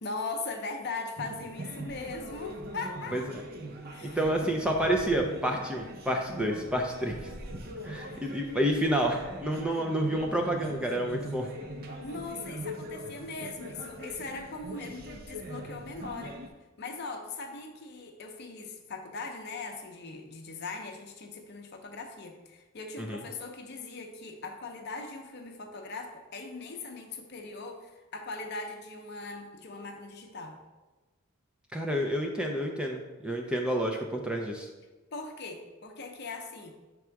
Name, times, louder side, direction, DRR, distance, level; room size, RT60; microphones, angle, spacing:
voice 1, 0.0-3.4 3.9-4.3 8.0-8.2 12.0-16.4 16.8-30.6 35.1-36.7, left 3 dB, 50° left, 4 dB, 0.6 m, -40 dB
sound 1, 1.2-16.5, right 1 dB, 45° right, 0.6 m, -41 dB
voice 2, 4.0-7.2 7.8-11.5 23.0-23.2 31.7-34.7, right 1 dB, 5° right, 1 dB, 0.4 m, -29 dB
6.1 x 3.5 x 4.5 m, 1.2 s
head